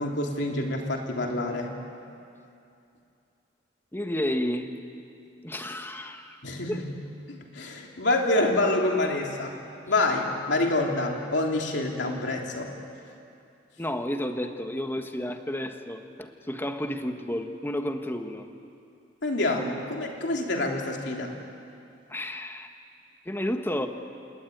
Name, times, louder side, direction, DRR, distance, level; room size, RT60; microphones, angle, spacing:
voice 1, 0.0-1.7 6.4-6.9 7.3-9.5 9.9-12.7 19.2-21.4, left 2 dB, 70° left, 1 dB, 3.2 m, -27 dB
voice 2, 3.9-4.7 5.4-6.4 6.7-6.8 13.8-18.5 22.1-22.7 23.2-23.9, left 1 dB, 10° left, 6 dB, 1.4 m, -31 dB
29.0 x 19.5 x 9.3 m, 2.6 s
head